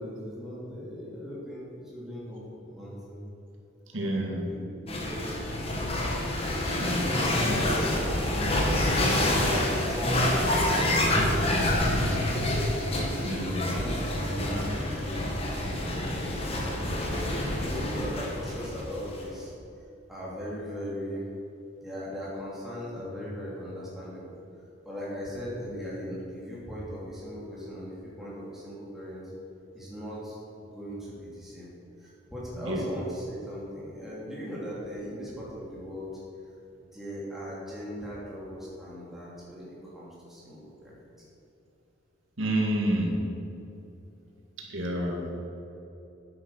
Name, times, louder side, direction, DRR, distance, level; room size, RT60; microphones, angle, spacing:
voice 1, 0.0-3.2 3.9-5.7 6.5-11.1 11.7-12.4 13.1-17.2 17.5-19.5 20.1-21.2 21.8-24.4 24.8-29.2 29.7-31.7 32.0-36.1 36.9-41.0, equal, ahead, -7 dB, 3.1 m, -39 dB
voice 2, 3.9-4.5 6.8-7.1 13.2-13.7 32.6-32.9 42.4-43.2 44.6-45.3, right 1 dB, 85° right, -1 dB, 2.1 m, -29 dB
sound 1, 4.9-19.2, left 1 dB, 30° left, 1.6 m, -27 dB
9.8 x 9.6 x 6.4 m, 2.9 s
head